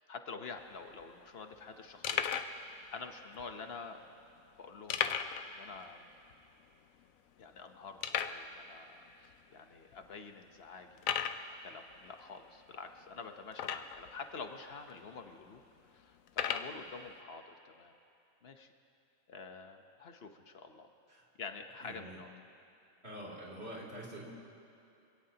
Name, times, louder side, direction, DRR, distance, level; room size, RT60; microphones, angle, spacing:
voice 1, 0.1-4.0 4.6-6.0 7.4-11.1 11.5-15.6 15.9-17.9 18.4-18.7 19.3-20.9 21.4-22.3, left 4 dB, 50° left, 6 dB, 1.1 m, -48 dB
sound 1, 0.6-0.7 0.8-1.0 1.5-1.6 2.0-2.6 3.3-3.4 4.9-5.5 5.8-5.9 6.3-6.4 7.0-7.1 8.0-8.4 9.2-9.3 9.9-10.0 11.0-11.5 13.5-14.1 14.9-15.0 16.3-16.7, left 8 dB, 85° left, 1.1 m, -34 dB
voice 2, 21.8-22.2 23.0-24.3, right 1 dB, 50° right, -5 dB, 3.2 m, -46 dB
25.0 x 17.0 x 2.9 m, 2.9 s
omnidirectional pair, 1.4 m